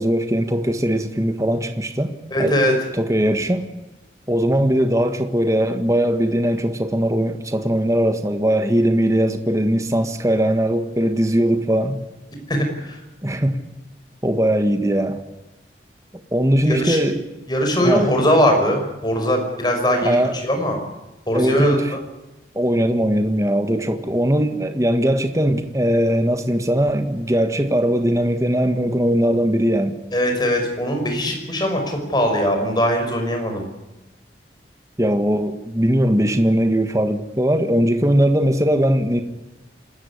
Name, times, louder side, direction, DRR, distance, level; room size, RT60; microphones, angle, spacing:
voice 1, 0.0-2.1 2.4-2.6 2.9-3.7 4.3-12.0 13.2-13.6 14.2-15.2 16.3-17.2 17.8-18.1 20.0-20.4 21.3-22.0 22.5-30.0 35.0-39.2, equal, 15° right, 1.5 m, -20 dB
voice 2, 2.3-2.7 12.5-13.0 16.7-17.0 17.5-20.2 20.4-20.8 21.3-22.0 30.1-33.7, equal, 25° left, 5.9 m, -20 dB
27.0 x 13.5 x 9.9 m
head